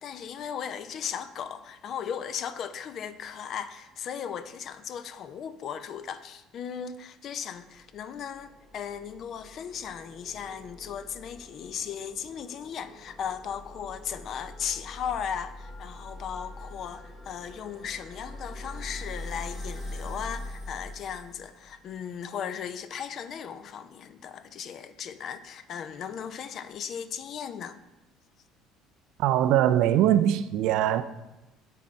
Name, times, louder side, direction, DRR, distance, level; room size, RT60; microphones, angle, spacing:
voice 1, 0.0-27.8, left 8 dB, 55° left, 0.4 m, -37 dB
sound 1, 7.7-21.9, left 1 dB, 35° left, 1.9 m, -43 dB
voice 2, 29.2-31.0, right 11 dB, 65° right, 0.3 m, -22 dB
7.5 x 4.1 x 4.4 m
hypercardioid pair, 65°, 0 cm